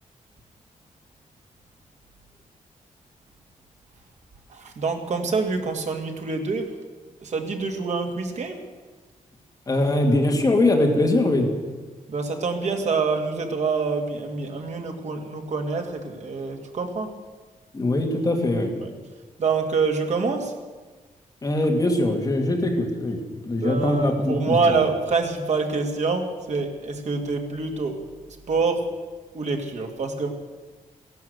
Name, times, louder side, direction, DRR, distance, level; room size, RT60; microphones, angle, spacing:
voice 1, 4.5-6.7 7.2-8.6 12.1-17.2 18.8-18.9 19.4-20.5 23.6-28.0 28.5-28.9 29.3-30.3, right 4 dB, 55° right, 4 dB, 2.1 m, -26 dB
voice 2, 9.7-11.5 17.7-18.7 21.4-24.7, left 1 dB, 25° left, 2 dB, 2.2 m, -22 dB
15.5 x 12.0 x 7.9 m, 1.3 s
wide cardioid pair, 180°, 14 cm